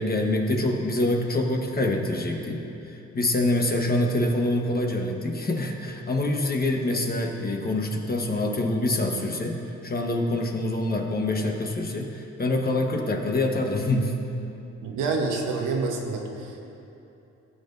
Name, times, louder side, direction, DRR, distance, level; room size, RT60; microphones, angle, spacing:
voice 1, 0.0-2.6 2.9-9.6 9.8-14.1, left 1 dB, 30° left, 1 dB, 1.2 m, -25 dB
voice 2, 14.8-16.6, right 3 dB, 85° right, 1 dB, 1.3 m, -27 dB
17.0 x 7.8 x 2.7 m, 2.8 s
cardioid pair, 90°, 30 cm